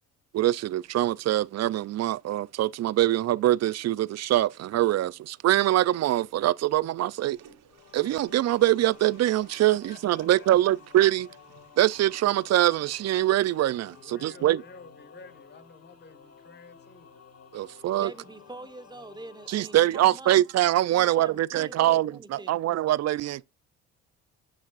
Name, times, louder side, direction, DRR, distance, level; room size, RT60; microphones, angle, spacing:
voice 1, 0.3-7.4 7.9-11.3 11.8-14.6 17.5-18.1 19.5-23.4, right 14 dB, 50° right, 0.5 m, -24 dB
Toilet flush, 7.3-13.4, right 7 dB, 70° right, 2.9 m, -58 dB
sound 1, 7.7-19.9, left 6 dB, 45° left, 1.6 m, -53 dB
voice 2, 9.7-10.8 13.9-17.2, left 4 dB, 30° left, 1.3 m, -51 dB
voice 3, 18.0-20.4 20.9-22.7, right 2 dB, 10° right, 1.2 m, -44 dB
9.4 x 6.4 x 2.4 m
supercardioid pair, 65°, 34 cm